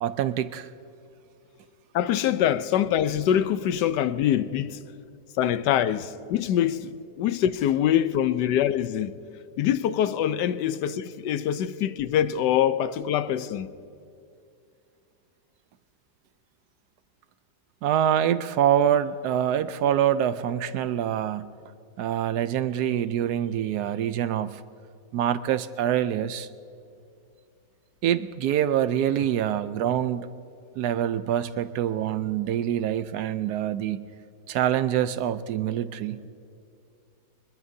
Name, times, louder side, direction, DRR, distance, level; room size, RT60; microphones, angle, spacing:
voice 1, 0.0-0.7 17.8-21.6 22.0-24.6 25.1-26.5 28.0-30.3 30.8-34.1 34.5-36.3, right 10 dB, 75° right, 1.1 m, -25 dB
voice 2, 1.9-4.8 5.4-9.1 9.6-13.7, left 10 dB, 90° left, 1.3 m, -24 dB
24.0 x 21.0 x 2.7 m
omnidirectional pair, 1.8 m